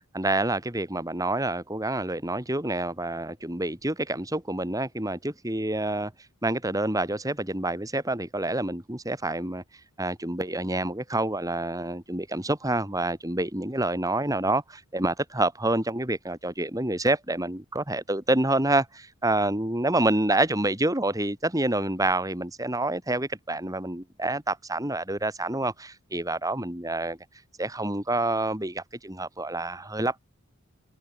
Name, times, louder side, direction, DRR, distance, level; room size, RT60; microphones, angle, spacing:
voice 1, 0.1-6.1 6.4-9.6 10.0-27.2 27.6-30.2, right 2 dB, 15° right, 3.2 m, -27 dB
head